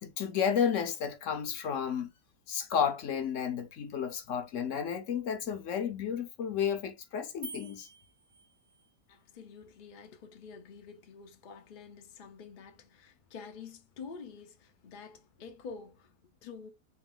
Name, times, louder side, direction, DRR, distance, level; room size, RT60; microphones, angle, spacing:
voice 1, 0.0-2.1 2.5-7.9, left 7 dB, 60° left, 0.9 m, -32 dB
sound 1, 7.4-9.0, right 3 dB, 55° right, 0.6 m, -48 dB
voice 2, 9.1-16.7, left 5 dB, 75° left, 0.4 m, -48 dB
3.8 x 2.5 x 3.6 m
omnidirectional pair, 1.8 m